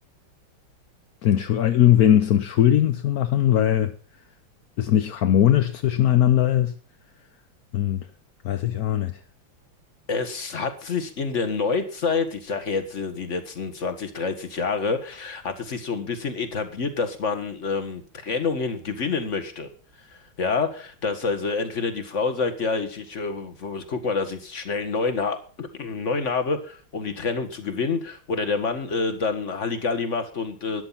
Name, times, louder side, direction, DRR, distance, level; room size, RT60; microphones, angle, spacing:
voice 1, 1.2-3.9 4.8-6.7 7.7-8.1 8.4-9.2, left 11 dB, 60° left, 1.1 m, -19 dB
voice 2, 10.1-19.7 20.1-30.8, left 4 dB, 35° left, 1.9 m, -27 dB
13.5 x 10.5 x 5.7 m
omnidirectional pair, 2.3 m